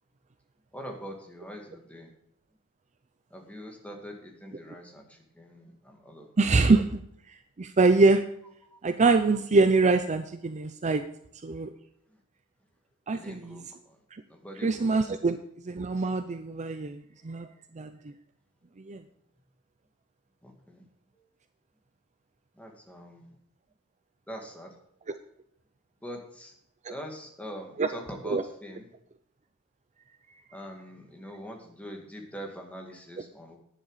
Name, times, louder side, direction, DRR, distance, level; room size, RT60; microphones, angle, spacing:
voice 1, 0.7-2.1 3.3-5.1 5.4-6.3 8.7-8.8 13.1-13.6 14.3-14.9 20.4-20.8 22.6-23.3 24.3-24.7 26.0-26.5 26.9-28.8 30.5-33.6, equal, 5° left, 1 dB, 2.1 m, -43 dB
voice 2, 6.4-7.0 7.6-8.2 8.8-11.0 11.4-11.7 13.1-13.6 14.6-15.4 15.6-17.5 17.8-17.9 18.9-19.0 26.9-27.0 27.8-27.9 28.2-28.4, right 3 dB, 30° right, 9 dB, 0.5 m, -24 dB
11.5 x 9.9 x 4.9 m, 0.74 s
head